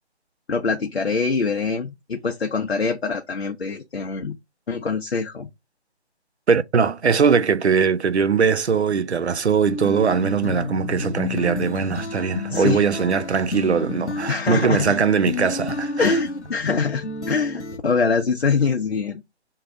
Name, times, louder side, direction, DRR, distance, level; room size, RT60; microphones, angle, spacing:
voice 1, 0.5-4.4 4.7-5.5 12.5-12.8 14.3-15.0 16.0-19.2, left 4 dB, 65° left, 0.7 m, -24 dB
voice 2, 6.5-16.2, right 6 dB, 70° right, 0.6 m, -21 dB
sound 1, 9.7-17.8, left 3 dB, 90° left, 1.1 m, -31 dB
3.8 x 2.8 x 4.6 m
figure-of-eight pair, 180°, 34 cm